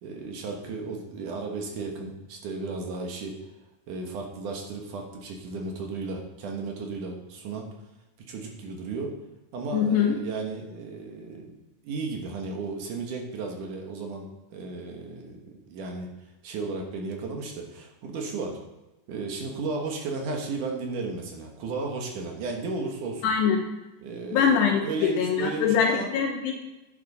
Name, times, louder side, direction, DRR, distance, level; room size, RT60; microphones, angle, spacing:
voice 1, 0.0-3.3 3.9-7.7 8.3-9.1 9.5-11.6 11.8-14.3 14.5-16.1 16.4-18.6 19.1-23.3 24.0-26.1, right 3 dB, 60° right, 1 dB, 2.3 m, -34 dB
voice 2, 9.7-10.2 23.2-23.7 24.3-26.5, left 7 dB, 75° left, 2 dB, 2.8 m, -23 dB
10.5 x 8.9 x 4.1 m, 1.0 s
omnidirectional pair, 5.2 m